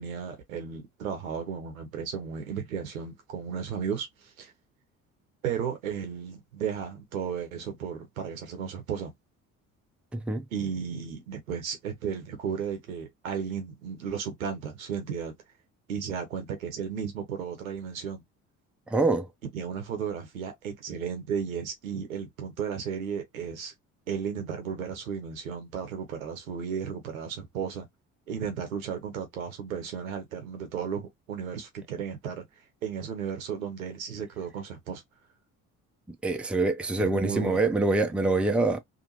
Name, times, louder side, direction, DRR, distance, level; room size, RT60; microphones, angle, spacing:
voice 1, 0.0-4.5 5.4-9.1 10.5-15.3 15.9-18.2 19.5-23.7 24.1-27.9 28.3-32.4 32.8-35.0 37.0-37.6, right 7 dB, 80° right, 0.9 m, -34 dB
voice 2, 10.1-10.5 18.9-19.3 36.2-38.8, right 2 dB, 5° right, 0.6 m, -25 dB
2.8 x 2.5 x 2.7 m
figure-of-eight pair, 50°, 41 cm